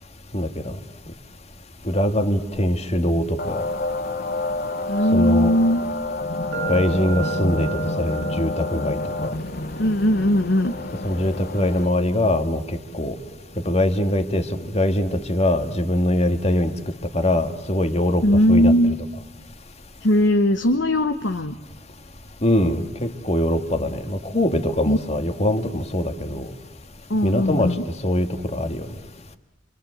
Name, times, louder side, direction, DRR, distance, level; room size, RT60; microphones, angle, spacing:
voice 1, 0.3-0.7 1.9-3.6 5.1-5.5 6.7-7.7 8.0-9.3 11.0-13.2 13.7-14.5 14.7-16.7 17.1-18.2 18.5-18.7 22.4-26.5 27.2-27.7 28.0-28.9, left 1 dB, 35° left, 7 dB, 1.8 m, -22 dB
sound 1, 3.4-11.9, left 2 dB, 50° left, 0.9 m, -28 dB
voice 2, 4.9-5.8 9.8-10.7 18.2-19.0 20.0-21.5 24.8-25.0 27.1-27.8, left 1 dB, 80° left, 7 dB, 1.2 m, -19 dB
sound 2, 6.5-14.4, right 10 dB, 65° right, 2.1 m, -37 dB
28.0 x 25.5 x 8.0 m, 1.0 s
head